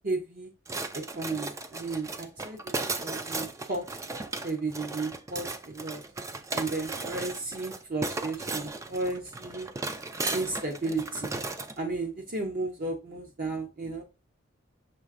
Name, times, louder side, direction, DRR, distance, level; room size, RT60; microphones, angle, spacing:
voice 1, 0.0-0.5 0.9-2.7 3.0-4.0 4.4-6.0 6.5-9.7 10.3-11.3 11.8-14.0, right 3 dB, 45° right, 1 dB, 0.7 m, -33 dB
sound 1, 0.7-11.8, right 3 dB, 15° right, 0.3 m, -36 dB
6.1 x 3.3 x 2.5 m, 0.29 s
head